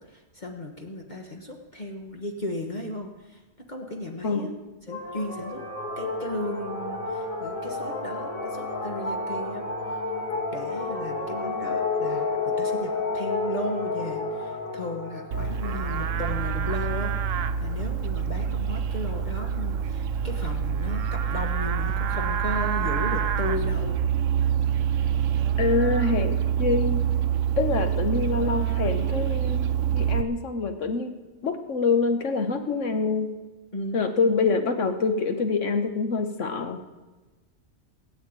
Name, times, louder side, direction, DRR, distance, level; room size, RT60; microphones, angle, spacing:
voice 1, 0.1-3.4 3.7-4.5 4.8-5.6 6.0-9.6 10.5-24.0 33.7-34.0, left 1 dB, 35° left, 1 dB, 1.4 m, -35 dB
sound 1, 4.9-16.7, left 3 dB, 85° left, 2.7 m, -31 dB
Livestock farm animals working animals, 15.3-30.2, right 8 dB, 75° right, 1.1 m, -26 dB
voice 2, 25.6-27.0 27.6-31.1 31.4-33.3 33.9-36.8, left 4 dB, 65° left, 7 dB, 1.5 m, -26 dB
18.0 x 7.4 x 8.8 m, 1.2 s
omnidirectional pair, 1.4 m